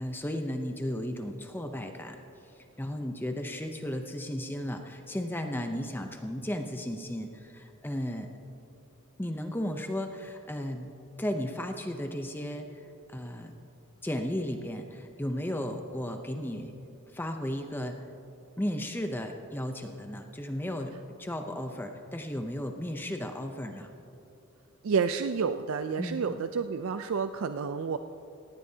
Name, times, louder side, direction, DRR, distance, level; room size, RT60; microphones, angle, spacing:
voice 1, 0.0-2.2 2.8-8.3 9.2-10.9 11.2-13.5 14.0-16.7 17.1-18.0 18.6-23.9 26.0-26.2, left 1 dB, 10° left, 5 dB, 0.6 m, -34 dB
voice 2, 24.8-28.0, right 5 dB, 70° right, 9 dB, 0.4 m, -29 dB
18.5 x 16.0 x 2.8 m, 2.8 s
head